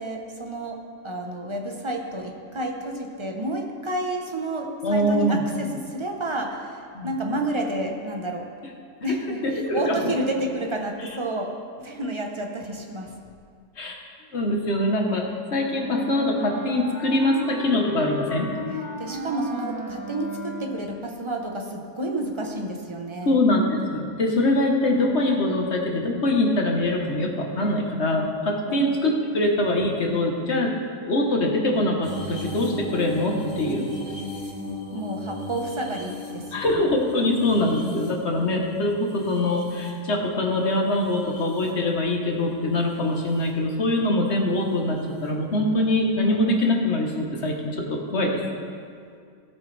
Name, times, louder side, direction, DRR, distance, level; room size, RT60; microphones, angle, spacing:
voice 1, 0.0-8.5 9.0-11.5 11.8-13.2 19.0-23.4 28.7-29.0 34.9-36.8, right 1 dB, 25° right, 2 dB, 0.9 m, -30 dB
voice 2, 4.8-5.4 6.9-7.1 9.4-10.1 13.8-14.0 14.3-18.5 23.2-30.7 31.1-33.9 36.5-48.4, left 1 dB, 45° left, 1 dB, 1.4 m, -23 dB
Wind instrument woodwind instrument, 15.5-21.0, equal, 80° right, 2.3 m, -35 dB
sound 1, 32.0-40.3 40.9-41.7 42.9-43.2 45.0-45.1, left 2 dB, 65° left, 3.1 m, -37 dB
17.0 x 7.9 x 3.4 m, 2.2 s
omnidirectional pair, 1.6 m